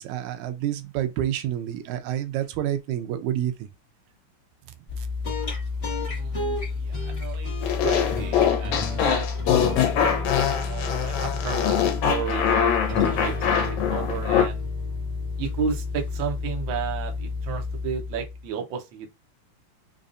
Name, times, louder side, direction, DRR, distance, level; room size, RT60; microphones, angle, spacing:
voice 1, 0.0-3.5, right 11 dB, 85° right, 2.0 m, -28 dB
sound 1, 4.9-18.5, left 3 dB, 35° left, 1.0 m, -30 dB
voice 2, 6.0-6.4 6.7-11.7 12.1-14.6 15.4-19.1, right 7 dB, 70° right, 1.2 m, -33 dB
sound 2, 7.6-14.5, left 8 dB, 75° left, 2.0 m, -23 dB
5.2 x 2.4 x 2.5 m
omnidirectional pair, 3.3 m